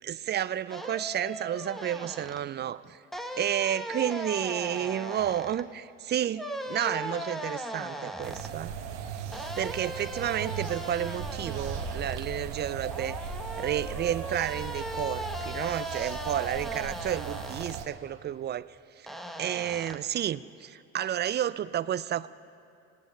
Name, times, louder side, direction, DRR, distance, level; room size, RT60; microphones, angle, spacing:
voice 1, 0.0-3.0 3.4-8.7 9.6-13.2 13.6-18.7 19.0-22.3, right 10 dB, 30° right, 18 dB, 0.4 m, -31 dB
sound 1, 0.7-2.4 3.1-5.6 6.3-8.5 9.3-12.3 12.9-17.8 19.1-20.0, equal, ahead, 1.1 m, -38 dB
sound 2, 8.2-17.9, right 6 dB, 85° right, 1.0 m, -37 dB
18.5 x 17.5 x 3.3 m, 2.5 s
hypercardioid pair, 55°, 34 cm